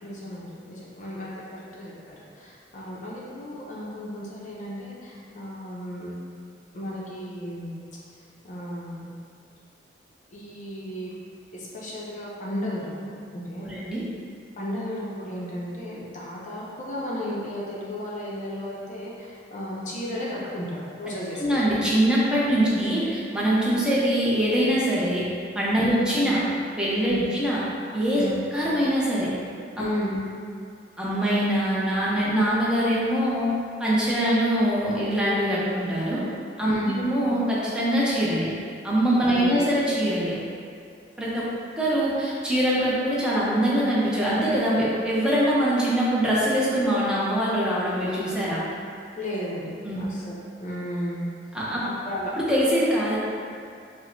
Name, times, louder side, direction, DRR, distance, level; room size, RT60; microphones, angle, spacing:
voice 1, 0.0-6.2 6.7-7.8 8.4-9.1 10.3-11.1 11.5-13.7 14.6-21.5 22.6-22.7 25.8-26.0 27.0-27.2 28.1-28.4 29.8-30.2 36.6-37.0 39.2-39.6 49.2-51.3 51.8-52.3, equal, 45° left, -5 dB, 0.5 m, -34 dB
voice 2, 13.6-14.0 21.3-25.3 25.5-26.4 26.8-27.6 27.9-28.2 28.5-29.3 29.8-29.9 31.0-33.5 33.8-36.2 36.6-38.5 38.8-40.4 41.2-41.4 41.8-48.6 49.8-50.0 51.5-51.8 52.3-53.2, equal, 5° right, -8 dB, 0.6 m, -23 dB
4.6 x 2.0 x 2.6 m, 2.3 s
head